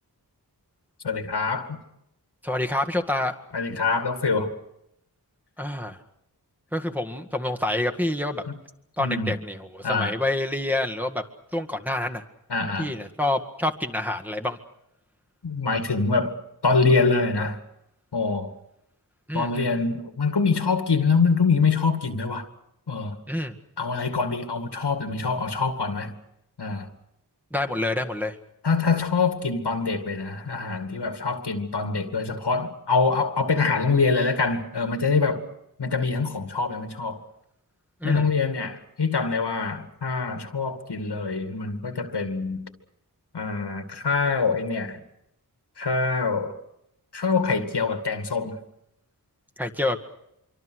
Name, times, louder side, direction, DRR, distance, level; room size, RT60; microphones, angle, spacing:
voice 1, 1.0-1.8 3.5-4.5 8.5-8.6 9.0-9.3 9.8-10.1 12.5-12.9 15.4-16.3 16.6-17.6 18.1-18.5 19.3-22.4 22.9-23.2 23.8-26.1 26.6-26.9 28.6-35.4 35.8-37.2 38.0-42.6 43.3-45.0 45.8-46.6 47.1-48.6, left 4 dB, 85° left, 2.3 m, -24 dB
voice 2, 2.4-3.3 5.6-6.0 6.7-8.4 9.0-11.2 11.5-12.2 12.8-14.6 19.3-19.7 23.3-23.5 27.5-28.4 38.0-38.3 49.6-50.0, left 1 dB, 5° right, 1.9 m, -27 dB
25.5 x 24.5 x 6.4 m
wide cardioid pair, 55°, 40 cm